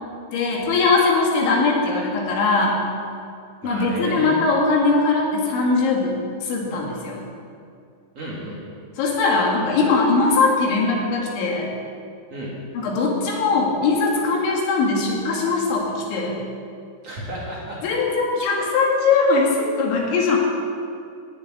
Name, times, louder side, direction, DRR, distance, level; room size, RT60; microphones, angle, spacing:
voice 1, 0.3-2.8 3.6-6.2 6.4-7.2 9.0-11.7 12.7-16.4 17.8-20.4, left 3 dB, 75° left, -1 dB, 4.3 m, -20 dB
voice 2, 3.6-4.4 8.1-8.6 12.3-12.6 17.0-17.9, right 1 dB, 45° right, -5 dB, 2.3 m, -33 dB
14.0 x 6.8 x 9.6 m, 2.4 s
omnidirectional pair, 5.4 m